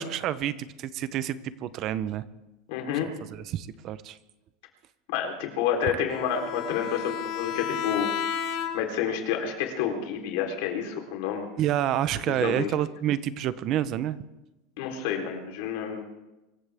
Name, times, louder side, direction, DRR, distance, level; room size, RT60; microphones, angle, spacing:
voice 1, 0.0-2.3 2.9-4.2 5.8-6.0 11.6-14.2, right 11 dB, 40° right, 15 dB, 0.9 m, -29 dB
voice 2, 2.7-3.1 5.1-8.1 8.7-11.5 12.4-12.7 14.8-16.0, left 8 dB, 65° left, 3 dB, 3.9 m, -29 dB
Bowed string instrument, 6.1-9.1, left 8 dB, 45° left, 1.8 m, -32 dB
24.5 x 14.5 x 3.6 m, 1.0 s
supercardioid pair, 145°, 0 cm